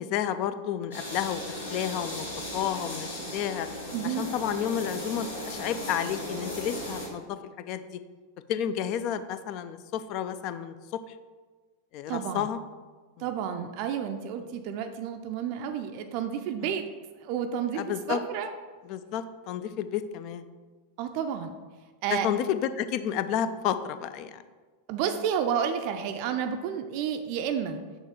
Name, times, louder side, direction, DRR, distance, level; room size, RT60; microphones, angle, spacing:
voice 1, 0.0-2.3 2.5-3.7 4.0-7.4 7.7-8.0 8.5-10.7 11.9-12.6 16.6-16.7 17.8-18.2 18.9-20.4 22.1-24.4, left 9 dB, 40° left, 12 dB, 0.3 m, -31 dB
sound 1, 0.9-7.1, left 1 dB, 70° left, 1.5 m, -37 dB
voice 2, 3.9-4.3 12.1-12.5 13.2-16.8 17.2-18.5 21.0-21.5 22.0-22.3 24.9-27.8, right 8 dB, 45° right, 6 dB, 0.4 m, -31 dB
6.4 x 3.0 x 4.9 m, 1.4 s
figure-of-eight pair, 90°, 0 cm